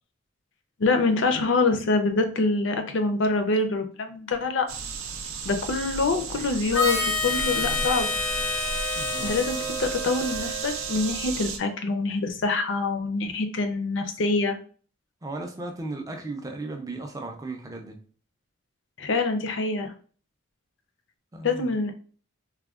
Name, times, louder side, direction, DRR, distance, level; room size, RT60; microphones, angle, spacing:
voice 1, 0.8-4.7 5.4-8.1 9.2-14.6 19.0-19.9 21.4-21.9, left 3 dB, 60° left, 0.4 m, -25 dB
sound 1, 4.7-11.6, right 5 dB, 85° right, 0.4 m, -34 dB
Harmonica, 6.7-11.5, left 2 dB, 85° left, 0.8 m, -29 dB
voice 2, 8.9-9.4 15.2-18.0 21.3-21.7, right 2 dB, 15° right, 0.3 m, -36 dB
3.4 x 2.1 x 2.3 m
head